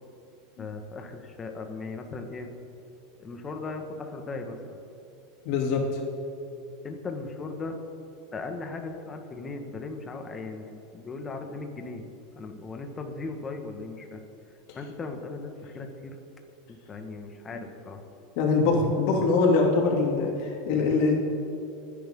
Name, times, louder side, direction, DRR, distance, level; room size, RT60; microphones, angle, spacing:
voice 1, 0.6-2.5 3.2-4.8 6.8-7.8 8.3-12.1 12.3-14.2 14.7-16.2 16.9-18.0, left 3 dB, 25° left, 4 dB, 1.8 m, -37 dB
voice 2, 5.4-5.8 17.5-17.6 18.4-21.2, left 4 dB, 65° left, 0 dB, 3.1 m, -23 dB
28.5 x 10.0 x 3.9 m, 2.8 s
supercardioid pair, 120°, 0 cm